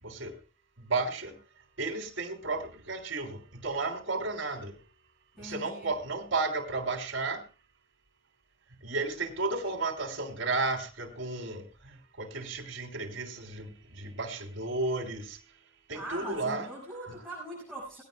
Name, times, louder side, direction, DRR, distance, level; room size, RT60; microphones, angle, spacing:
voice 1, 0.0-0.4 0.8-1.4 1.8-4.8 5.4-7.4 8.8-15.4 15.9-16.7 17.1-17.2, right 3 dB, 75° right, 3.3 m, -33 dB
voice 2, 5.4-5.9 15.9-18.0, right 1 dB, ahead, 5.9 m, -41 dB
20.0 x 16.0 x 2.3 m
head